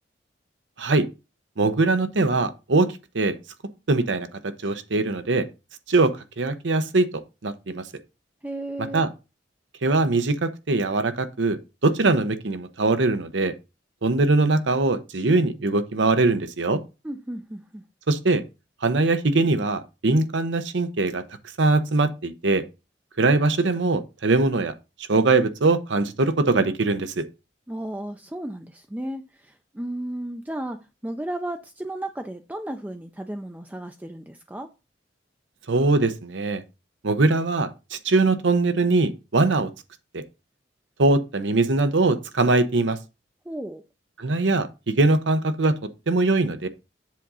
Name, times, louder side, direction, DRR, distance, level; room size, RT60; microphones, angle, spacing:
voice 1, 1.6-3.4 3.9-5.5 5.9-7.9 8.9-9.1 9.8-13.5 14.0-16.8 18.1-18.4 18.8-21.2 21.6-22.6 23.2-24.7 25.1-27.2 35.7-36.6 37.0-39.7 40.1-40.2 41.0-43.0 44.2-45.8 46.1-46.7, right 3 dB, 75° right, 0.8 m, -22 dB
voice 2, 8.4-9.0 17.0-17.8 27.7-34.7 43.5-43.8, right 1 dB, 10° right, 0.4 m, -34 dB
7.5 x 3.7 x 5.5 m
head